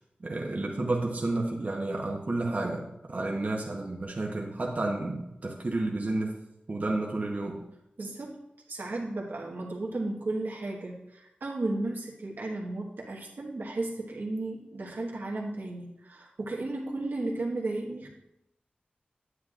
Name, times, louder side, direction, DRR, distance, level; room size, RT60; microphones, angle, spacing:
voice 1, 0.2-6.4 6.7-7.6, right 2 dB, 50° right, -1 dB, 1.0 m, -31 dB
voice 2, 8.0-8.4 8.7-18.1, right 2 dB, 85° right, -3 dB, 1.4 m, -34 dB
9.6 x 8.2 x 2.5 m, 0.86 s
wide cardioid pair, 85°, 3 cm